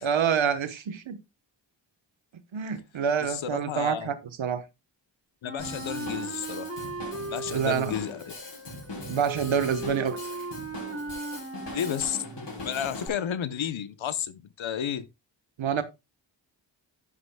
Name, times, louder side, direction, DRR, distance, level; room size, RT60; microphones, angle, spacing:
voice 1, 0.0-1.2 2.5-4.6 7.5-7.9 9.1-10.2 15.6-15.8, right 7 dB, 85° right, 1.2 m, -27 dB
voice 2, 3.2-4.1 5.4-6.7 7.3-8.3 11.7-12.2 12.6-15.1, left 9 dB, 90° left, 0.9 m, -32 dB
Wind instrument woodwind instrument, 5.4-12.4, right 3 dB, 30° right, 2.5 m, -37 dB
Drum kit / Drum, 5.6-13.1, left 2 dB, 65° left, 6.2 m, -41 dB
11.0 x 9.6 x 2.2 m
cardioid pair, 45°, 45 cm